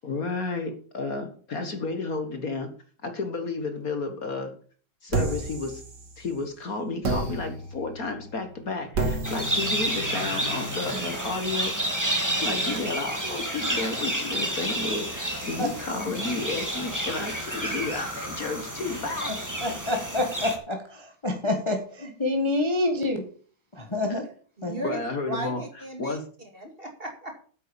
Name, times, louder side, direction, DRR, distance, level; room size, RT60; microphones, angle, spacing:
voice 1, 0.0-2.7 3.0-4.5 5.0-5.8 6.2-12.1 12.4-19.3 24.0-24.2 24.8-25.6 26.0-26.2, left 3 dB, 45° left, 6 dB, 1.9 m, -32 dB
sound 1, 5.1-6.5 7.0-12.8, right 2 dB, 55° right, 2.8 m, -33 dB
sound 2, 9.2-20.6, right 1 dB, 10° right, 2.3 m, -30 dB
voice 2, 19.6-23.2 23.7-24.3 24.6-24.8, left 2 dB, 15° left, 3 dB, 1.5 m, -27 dB
voice 3, 24.6-25.0 25.3-26.2 26.5-27.4, right 1 dB, 30° right, 4 dB, 2.2 m, -35 dB
9.4 x 8.4 x 7.1 m, 0.43 s
omnidirectional pair, 2.2 m